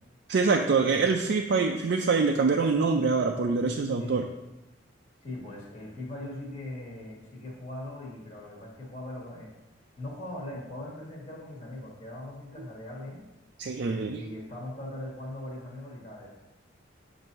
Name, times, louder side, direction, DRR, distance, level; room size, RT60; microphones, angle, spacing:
voice 1, 0.3-4.2 13.6-14.3, right 4 dB, 60° right, 2 dB, 0.4 m, -25 dB
voice 2, 5.2-9.5 10.0-13.2 13.9-16.3, left 1 dB, 35° left, -6 dB, 1.3 m, -40 dB
7.6 x 2.6 x 5.3 m, 1.0 s
head